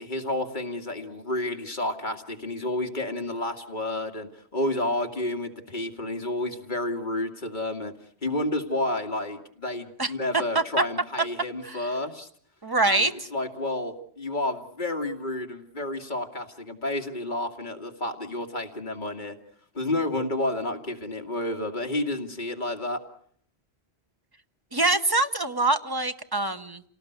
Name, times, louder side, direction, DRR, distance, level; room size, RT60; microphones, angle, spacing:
voice 1, 0.0-7.9 8.2-12.3 12.8-19.3 19.7-23.0, left 1 dB, 45° left, 4 dB, 2.5 m, -30 dB
voice 2, 12.6-13.1 24.7-26.8, right 2 dB, 20° right, 7 dB, 1.1 m, -24 dB
28.0 x 18.5 x 8.0 m, 0.62 s
omnidirectional pair, 1.1 m